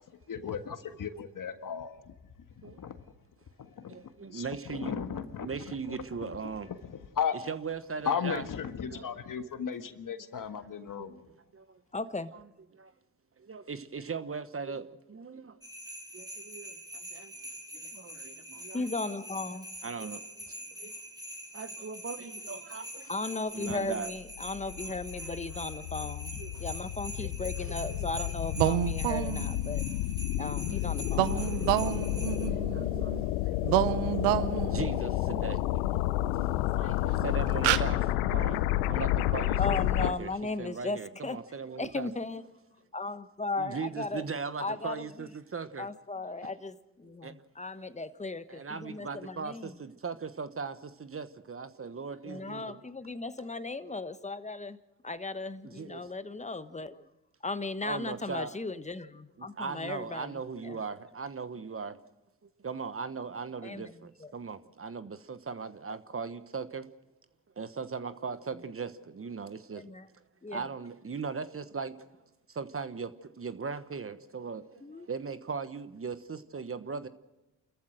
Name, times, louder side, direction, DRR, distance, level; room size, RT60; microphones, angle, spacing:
voice 1, 0.3-2.0 2.8-3.0 3.8-4.0 4.3-4.5 4.7-5.5 5.9-6.0 7.2-7.4 8.1-11.2, left 7 dB, 50° left, 1.7 m, -34 dB
voice 2, 3.9-5.0 5.4-6.7 7.3-8.4 8.9-9.5 10.0-10.7 11.0-11.8 12.7-12.9 13.4-15.6 16.1-17.4 17.7-18.9 19.8-21.0 21.5-23.1 23.5-24.1 24.5-24.7 26.0-26.1 26.4-26.6 27.2-27.5 27.9-28.1 31.3-31.9 32.5-33.3 34.3-35.8 36.3-39.6 40.0-40.3 40.6-42.1 43.6-45.9 47.0-47.3 48.5-52.8 55.6-56.0 57.8-58.6 59.4-62.0 62.6-66.9 67.6-69.9 70.5-72.1 72.5-77.1, right 5 dB, 30° right, 1.2 m, -39 dB
voice 3, 11.9-12.3 18.7-19.7 23.1-29.8 30.4-31.5 39.6-41.4 41.8-42.4 42.9-44.3 44.6-45.3 45.8-49.8 52.2-54.8 55.0-57.1 57.4-60.8 63.6-64.3 68.5-68.6 69.7-70.1 70.4-70.7 74.8-75.1, left 3 dB, 15° left, 1.2 m, -36 dB
sound 1, 15.6-32.5, right 1 dB, 10° right, 3.1 m, -44 dB
sound 2, 24.2-40.1, left 15 dB, 85° left, 0.7 m, -30 dB
sound 3, 28.6-29.7 31.1-33.2 33.6-35.1 36.6-36.7 37.2-37.3 37.6-37.8, right 15 dB, 85° right, 0.8 m, -29 dB
29.0 x 14.5 x 6.3 m
hypercardioid pair, 50°, 42 cm